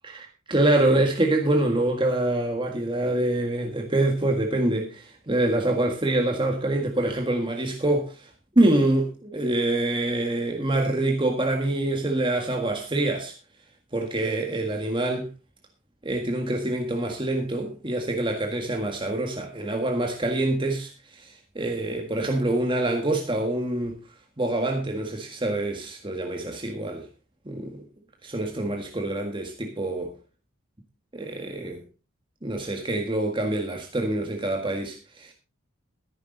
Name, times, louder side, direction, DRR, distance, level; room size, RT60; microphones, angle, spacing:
voice 1, 0.0-8.3 8.6-13.3 13.9-15.3 16.0-24.0 24.4-27.0 27.5-27.8 28.2-30.1 31.1-31.8 32.4-35.3, right 1 dB, 25° right, 1.7 m, -25 dB
14.0 x 11.0 x 4.0 m
head